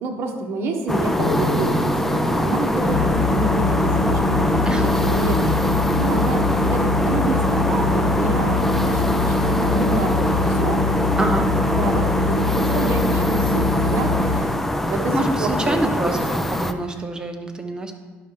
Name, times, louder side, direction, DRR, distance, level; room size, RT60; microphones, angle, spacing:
voice 1, 0.0-10.8 11.8-14.5 14.9-15.1 15.4-16.4, right 3 dB, 60° right, 2 dB, 1.2 m, -28 dB
sound 1, 0.9-16.7, left 1 dB, 5° left, 0.5 m, -23 dB
sound 2, 1.2-4.6, right 1 dB, 75° left, 1.6 m, -31 dB
sound 3, 2.8-14.4, left 3 dB, 30° left, 1.5 m, -23 dB
voice 2, 11.2-11.5 15.1-17.9, right 1 dB, 15° right, 4 dB, 1.0 m, -26 dB
11.5 x 5.7 x 3.3 m, 1.3 s
cardioid pair, 100°, 5 cm